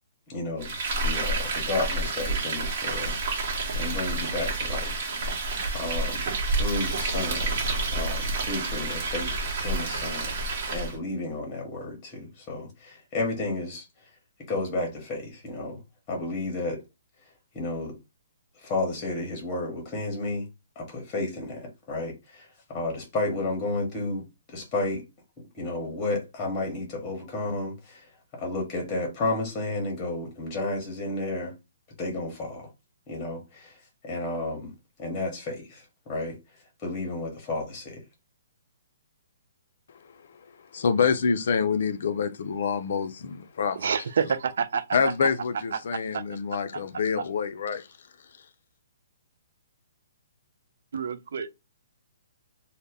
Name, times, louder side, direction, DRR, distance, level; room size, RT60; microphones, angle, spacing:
voice 1, 0.3-0.8 1.0-3.2 3.7-5.1 5.7-6.2 6.5-7.6 7.9-10.4 10.7-13.9 14.5-15.8 16.1-16.8 17.5-17.9 18.6-20.5 20.8-24.2 24.5-25.0 25.4-28.1 28.4-31.5 32.0-32.7 33.1-33.7 34.0-34.7 35.0-36.4 36.8-38.0, left 2 dB, 25° left, 0.8 m, -32 dB
Frying (food), 0.6-11.0, right 2 dB, 50° right, 0.9 m, -29 dB
voice 2, 40.7-43.8 44.9-47.8, left 6 dB, 65° left, 0.4 m, -26 dB
voice 3, 43.7-45.1 45.7-46.2 46.7-46.8 50.9-51.5, right 6 dB, 65° right, 0.3 m, -28 dB
2.1 x 2.0 x 3.3 m
hypercardioid pair, 135°, 0 cm